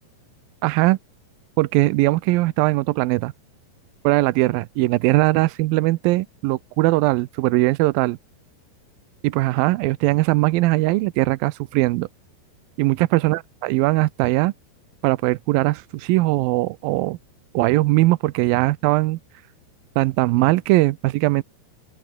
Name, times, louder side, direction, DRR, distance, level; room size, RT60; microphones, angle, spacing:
voice 1, 0.6-1.0 1.6-3.3 4.0-8.2 9.2-12.1 12.8-14.5 15.0-17.2 17.5-19.2 20.0-21.4, right 19 dB, 90° right, 2.0 m, -20 dB
open air
omnidirectional pair, 5.0 m